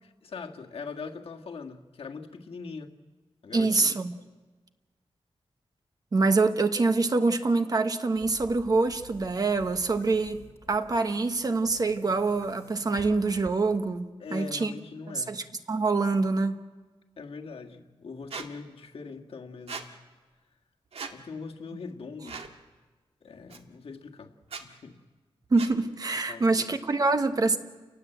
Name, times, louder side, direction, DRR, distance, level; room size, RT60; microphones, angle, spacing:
voice 1, 0.0-2.9 3.4-3.9 14.2-15.4 17.2-19.9 21.1-22.4 23.2-24.3 24.6-25.0 26.3-26.7, left 4 dB, 70° left, 1.9 m, -41 dB
voice 2, 3.5-4.1 6.1-14.7 15.1-15.4 15.7-16.6 25.5-27.6, right 3 dB, 40° right, 1.2 m, -25 dB
Boom, 8.2-14.0, left 3 dB, 25° left, 1.9 m, -51 dB
Squeak, 18.3-18.5 19.7-19.9 20.9-21.1 22.2-22.5 23.5-23.6 24.4-24.6 25.6-25.7, right 4 dB, 85° right, 1.8 m, -38 dB
29.5 x 19.5 x 8.0 m
wide cardioid pair, 170°, 10 cm